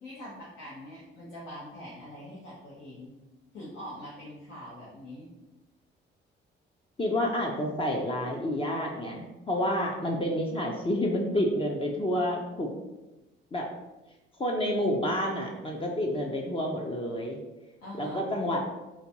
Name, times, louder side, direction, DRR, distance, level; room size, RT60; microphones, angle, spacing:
voice 1, 0.0-3.1 3.5-5.3 17.8-18.3, equal, 75° left, -7 dB, 1.0 m, -43 dB
voice 2, 7.0-12.7 13.5-13.7 14.4-17.4 18.0-18.6, left 1 dB, 25° left, 0 dB, 0.5 m, -29 dB
3.9 x 2.2 x 2.8 m, 1.0 s
cardioid pair, 90°, 20 cm